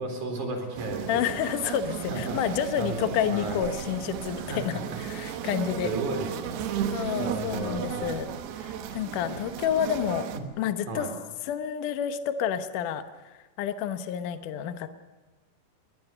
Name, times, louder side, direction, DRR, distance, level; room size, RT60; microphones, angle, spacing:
voice 1, 0.0-1.4 2.1-2.4 2.8-3.6 4.4-5.0 5.8-6.6 7.2-8.2 10.3-10.4 10.9-11.1, right 2 dB, 50° right, 3 dB, 5.4 m, -34 dB
sound 1, 0.8-10.4, right 9 dB, 75° right, 3.2 m, -35 dB
voice 2, 1.1-5.9 6.9-10.3 10.6-11.1 11.4-14.9, left 9 dB, 70° left, 9 dB, 2.2 m, -29 dB
21.5 x 20.0 x 6.9 m, 1.2 s
omnidirectional pair, 4.6 m